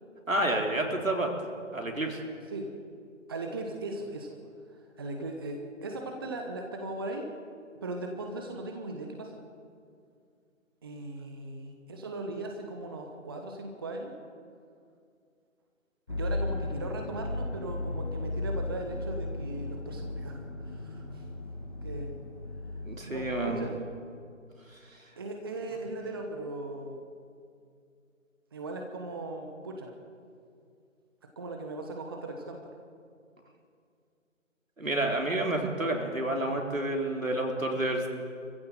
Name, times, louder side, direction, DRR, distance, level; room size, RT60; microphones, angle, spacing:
voice 1, 0.3-1.3 1.7-2.2 22.8-23.7 24.9-25.0 34.8-38.1, right 1 dB, 80° right, 2 dB, 3.9 m, -29 dB
voice 2, 3.3-4.3 5.0-7.3 7.8-9.4 10.8-14.2 16.1-21.2 21.8-22.1 23.1-23.7 25.2-27.0 28.5-29.9 31.4-32.6, right 2 dB, 20° right, 3 dB, 1.0 m, -38 dB
sound 1, 16.1-23.8, left 2 dB, 35° left, 3.4 m, -36 dB
25.5 x 15.5 x 7.7 m, 2.3 s
figure-of-eight pair, 150°, 40 cm